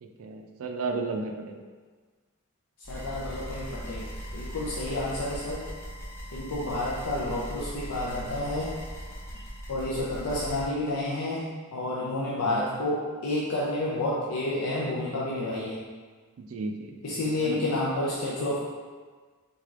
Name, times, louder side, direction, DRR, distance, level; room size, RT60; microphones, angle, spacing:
voice 1, 0.0-1.6 12.4-12.7 16.4-17.6, right 3 dB, 70° right, 4 dB, 0.4 m, -34 dB
sound 1, 2.8-10.7, equal, 10° left, 0.5 m, -39 dB
voice 2, 2.9-4.1 4.3-5.6 6.3-8.7 9.3-15.8 17.0-18.6, left 1 dB, 90° left, -5 dB, 0.5 m, -30 dB
3.6 x 3.3 x 2.4 m, 1.5 s
head